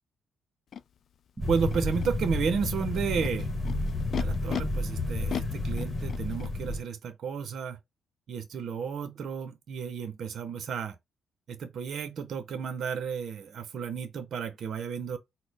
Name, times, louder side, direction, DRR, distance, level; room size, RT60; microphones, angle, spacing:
Animal, 0.7-0.8 1.6-2.1 2.9-4.6 5.3-6.5, left 8 dB, 60° left, 0.4 m, -36 dB
sound 1, 1.4-6.8, left 2 dB, 35° left, 1.1 m, -31 dB
Boom, 1.4-4.3, right 3 dB, 30° right, 0.8 m, -37 dB
voice 1, 1.5-3.5 4.2-7.8 8.3-11.0 11.5-15.2, right 6 dB, 60° right, 0.6 m, -32 dB
4.2 x 2.0 x 3.3 m
cardioid pair, 90°, 0 cm